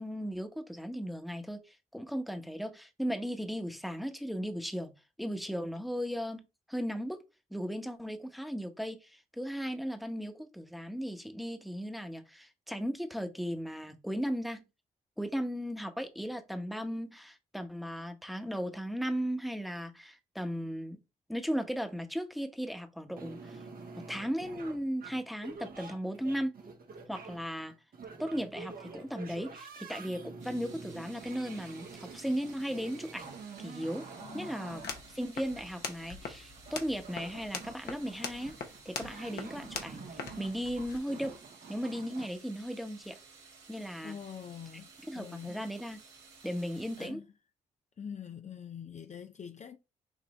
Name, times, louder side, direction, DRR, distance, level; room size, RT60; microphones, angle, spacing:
voice 1, 0.0-4.9 5.2-7.2 7.5-14.6 15.2-21.0 21.3-23.6 24.1-26.5 27.1-27.7 28.2-33.3 33.6-34.0 34.3-38.5 38.8-41.3 41.7-43.2 43.7-44.1 45.1-46.0 46.4-47.2, equal, ahead, 1.2 m, -36 dB
sound 1, 23.2-42.3, right 4 dB, 55° right, 1.3 m, -48 dB
sound 2, 30.4-47.1, right 4 dB, 80° right, 1.5 m, -56 dB
voice 2, 34.2-34.8 44.0-44.9 45.1-45.7 47.0-47.3 48.0-49.8, left 7 dB, 40° left, 0.6 m, -44 dB
sound 3, 34.7-41.0, left 5 dB, 65° left, 1.1 m, -43 dB
6.4 x 2.5 x 3.2 m
hypercardioid pair, 40°, 18 cm